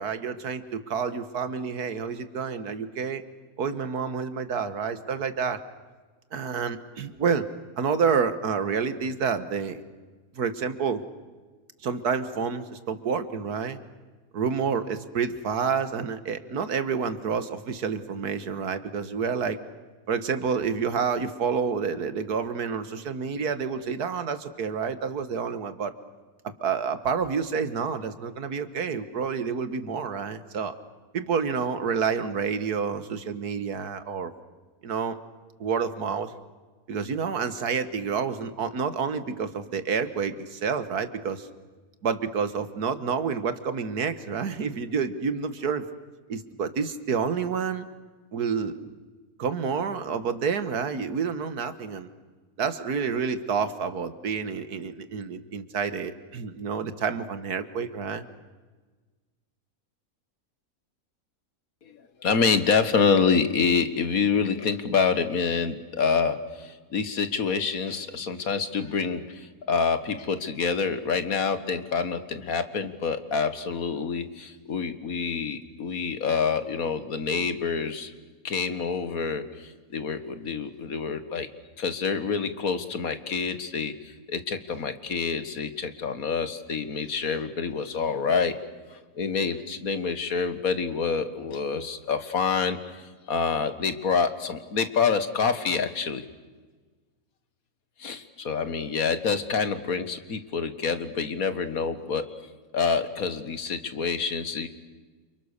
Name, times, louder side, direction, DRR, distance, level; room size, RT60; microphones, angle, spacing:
voice 1, 0.0-3.2 3.6-5.6 6.3-7.5 7.8-9.8 10.3-11.0 11.8-13.8 14.3-19.6 20.1-25.9 26.4-30.7 31.1-34.3 34.8-35.2 35.6-36.3 36.9-41.5 42.0-45.9 46.3-47.9 48.3-48.9 49.4-52.1 52.6-58.3, right 6 dB, 85° right, 11 dB, 2.0 m, -29 dB
voice 2, 61.9-78.1 78.4-81.5 81.8-88.5 88.9-93.0 93.3-96.2 98.0-102.3 102.7-104.7, left 5 dB, 65° left, 10 dB, 2.0 m, -27 dB
29.5 x 28.0 x 6.7 m, 1.3 s
omnidirectional pair, 1.6 m